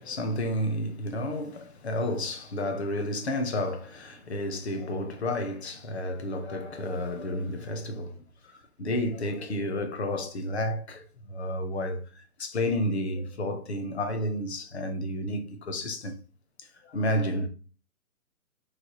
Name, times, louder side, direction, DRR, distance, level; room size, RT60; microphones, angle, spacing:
voice 1, 0.0-12.0 12.4-16.2 16.8-17.5, left 1 dB, 45° left, 0.6 m, -31 dB
3.2 x 2.1 x 4.0 m
hypercardioid pair, 170°, 46 cm